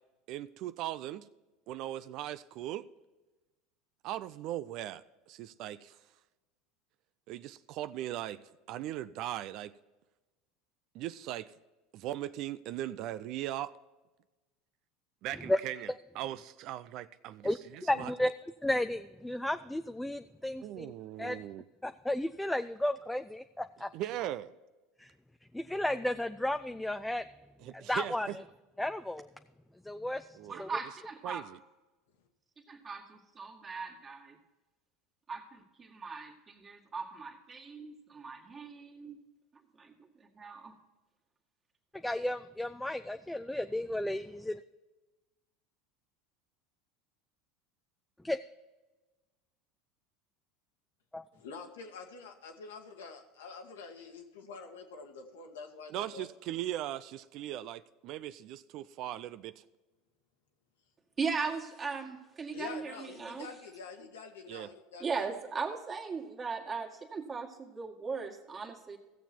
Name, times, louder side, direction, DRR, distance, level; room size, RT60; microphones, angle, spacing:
voice 1, 0.3-1.3 1.7-2.8 4.0-6.0 7.3-8.4 8.7-9.7 10.9-11.5 11.9-13.7 15.2-18.1 20.6-21.6 23.9-24.5 27.6-28.4 30.3-30.6 31.2-31.6 55.9-59.6 64.5-64.7, right 13 dB, 55° right, 14 dB, 0.4 m, -39 dB
voice 2, 17.4-18.3 18.6-20.9 21.2-21.4 21.8-23.9 25.0-25.1 25.5-27.2 27.7-28.3 28.8-29.3 29.9-30.3 30.6-30.7 42.0-44.6 48.2-48.4 51.1-51.2, left 1 dB, 5° left, 9 dB, 0.4 m, -33 dB
voice 3, 30.5-31.5 32.7-34.4 35.3-39.2 39.8-39.9 40.3-40.7 61.2-63.5 65.0-69.0, right 5 dB, 30° right, 1 dB, 2.1 m, -38 dB
voice 4, 51.3-56.3 62.5-65.2, left 4 dB, 80° left, 3 dB, 1.6 m, -46 dB
16.0 x 7.2 x 4.4 m, 1.1 s
hypercardioid pair, 85°, 0 cm